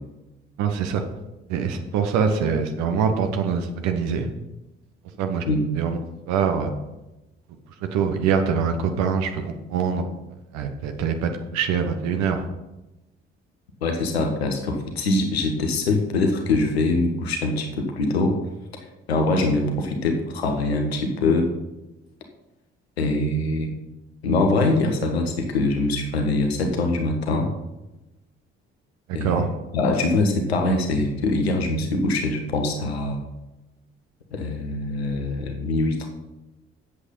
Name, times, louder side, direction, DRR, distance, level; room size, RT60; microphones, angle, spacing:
voice 1, 0.6-1.0 1.5-4.3 5.2-5.4 5.8-6.0 6.3-6.7 7.8-10.1 10.5-12.4 29.1-29.5, right 6 dB, 60° right, 6 dB, 1.0 m, -24 dB
voice 2, 13.8-18.3 19.1-21.5 23.0-23.7 24.2-27.5 29.1-29.5 29.7-33.2 34.3-36.1, left 2 dB, 80° left, 4 dB, 1.2 m, -23 dB
8.1 x 8.1 x 5.6 m, 0.99 s
figure-of-eight pair, 40°, 31 cm